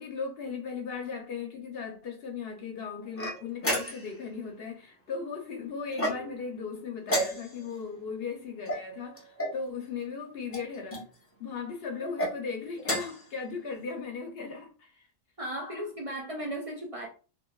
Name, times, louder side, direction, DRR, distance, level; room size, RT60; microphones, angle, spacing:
voice 1, 0.0-11.1 11.4-15.1, left 5 dB, 60° left, 0.8 m, -37 dB
sound 1, 3.2-4.2 5.9-6.5 7.0-7.8 8.6-9.6 10.5-11.0 12.0-12.3 12.8-13.3, equal, 20° left, 0.4 m, -32 dB
voice 2, 15.4-17.1, right 1 dB, 65° right, 0.3 m, -36 dB
3.1 x 2.5 x 2.3 m
omnidirectional pair, 1.3 m